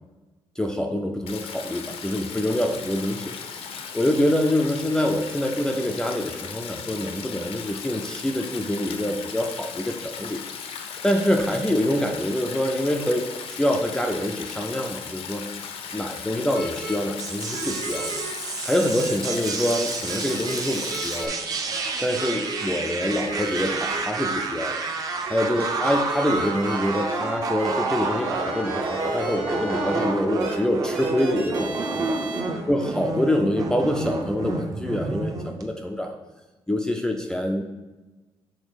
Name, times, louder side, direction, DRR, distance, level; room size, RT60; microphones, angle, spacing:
voice 1, 0.6-10.4 10.7-15.5 15.9-18.1 18.6-21.4 22.0-24.8 25.3-32.1 32.7-36.2 36.7-37.6, left 1 dB, 5° left, 2 dB, 0.4 m, -26 dB
Stream, 1.3-21.3, left 6 dB, 75° left, 0.7 m, -37 dB
sound 1, 16.5-16.9 17.5-18.3 18.7-19.5 20.1-20.5 20.9-21.3 21.7-22.7 23.0-24.4 25.3-30.0 30.4-30.5 30.9-32.4, right 2 dB, 85° right, 1.7 m, -35 dB
sound 2, 17.2-35.6, right 3 dB, 35° right, 0.7 m, -29 dB
6.4 x 3.9 x 5.0 m, 1.2 s
cardioid pair, 175°, 10 cm